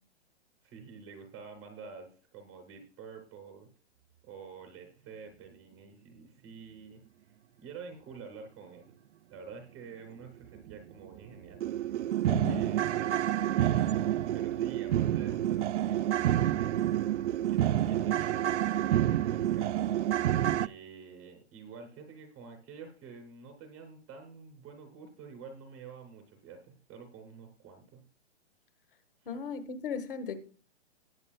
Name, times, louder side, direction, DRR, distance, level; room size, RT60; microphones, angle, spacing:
voice 1, 0.6-3.7 4.2-7.3 7.6-8.9 9.3-12.0 12.4-13.7 14.3-16.9 17.5-19.9 20.5-28.0 29.2-29.3, right 5 dB, 5° right, 0.5 m, -49 dB
sound 1, 10.7-10.8 11.2-11.3 11.6-20.7, right 12 dB, 75° right, 0.5 m, -28 dB
voice 2, 12.2-12.6 29.2-30.4, left 5 dB, 50° left, 1.5 m, -36 dB
18.5 x 8.3 x 2.2 m
hypercardioid pair, 170°, 35 cm